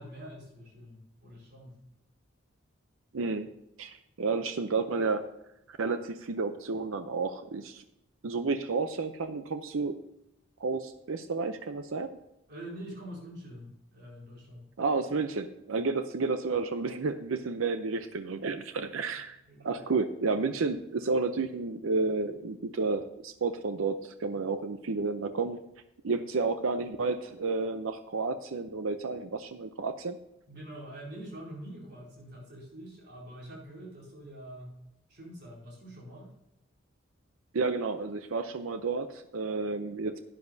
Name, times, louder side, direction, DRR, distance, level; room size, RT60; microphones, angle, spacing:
voice 1, 0.0-1.8 12.5-14.7 19.5-19.8 30.5-34.8 35.1-36.3, right 1 dB, 50° right, -3 dB, 4.3 m, -45 dB
voice 2, 3.1-3.5 3.8-5.2 5.7-7.8 8.2-9.9 10.6-12.1 14.8-19.4 19.6-25.6 26.0-30.2 37.5-40.2, right 4 dB, 80° right, 9 dB, 0.6 m, -31 dB
12.0 x 10.0 x 2.7 m, 0.84 s
head